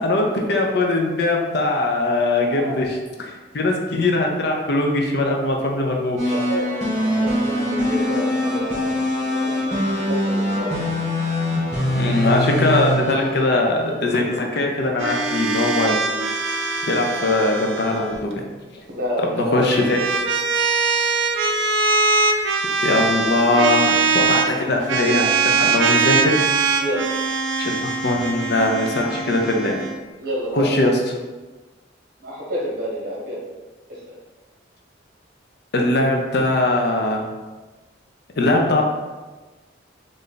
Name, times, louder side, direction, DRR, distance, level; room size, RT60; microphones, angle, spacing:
voice 1, 0.0-6.3 11.9-16.0 16.9-18.3 19.4-20.0 22.8-26.4 27.6-27.7 28.0-29.8 30.5-30.9 35.7-37.3 38.4-38.8, left 2 dB, 55° left, 1 dB, 0.5 m, -21 dB
voice 2, 2.4-2.8 6.3-6.7 7.0-10.9 17.1-17.3 18.9-19.7 26.8-27.1 30.2-30.7 32.2-33.4 33.9-34.1, equal, 50° right, -4 dB, 1.0 m, -29 dB
sound 1, 6.2-14.4, left 1 dB, 35° right, 1.2 m, -23 dB
sound 2, 15.0-18.2 19.5-24.5 24.9-30.0, right 4 dB, 80° right, 0.4 m, -22 dB
3.3 x 2.6 x 3.8 m, 1.2 s
head